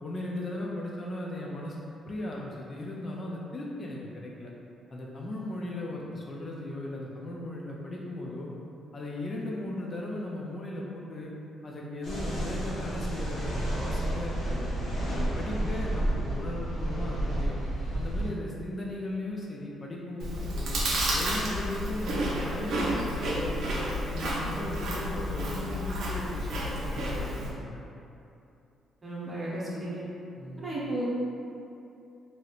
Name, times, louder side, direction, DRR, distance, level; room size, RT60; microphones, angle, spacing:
voice 1, 0.0-4.5 4.9-8.5 8.9-11.3 11.6-14.7 15.1-17.6 17.9-20.8 21.1-23.7 24.0-27.8 30.4-30.7, left 1 dB, 40° left, -3 dB, 0.4 m, -37 dB
sound 1, 12.0-18.3, right 1 dB, 70° left, 0.9 m, -31 dB
Chewing mastication, 20.2-27.5, equal, 70° right, 0.5 m, -31 dB
voice 2, 29.0-30.0 30.6-31.0, right 1 dB, 30° right, -7 dB, 0.8 m, -34 dB
3.1 x 2.8 x 2.4 m, 2.7 s
cardioid pair, 90°, 0 cm